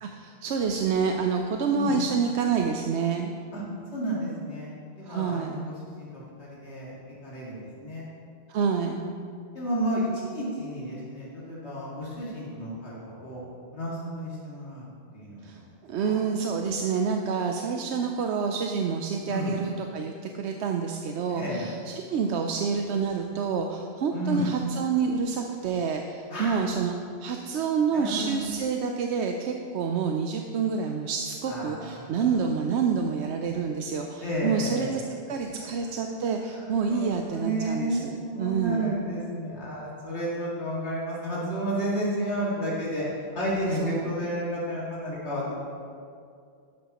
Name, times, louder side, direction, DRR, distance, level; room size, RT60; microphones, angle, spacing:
voice 1, 0.0-3.3 5.1-5.6 8.5-9.0 15.4-27.0 27.2-35.0 35.3-39.0 43.7-44.1, right 5 dB, 85° right, 3 dB, 0.9 m, -28 dB
voice 2, 3.9-6.9 7.2-8.0 8.9-9.1 9.5-14.8 15.1-15.5 16.0-16.2 19.3-19.6 21.3-21.7 24.1-24.4 26.3-26.7 27.9-28.2 31.5-32.3 34.2-35.0 35.5-35.7 36.5-43.0 43.3-45.5, right 1 dB, 80° left, -7 dB, 2.4 m, -32 dB
12.5 x 10.5 x 3.0 m, 2.4 s
omnidirectional pair, 1.1 m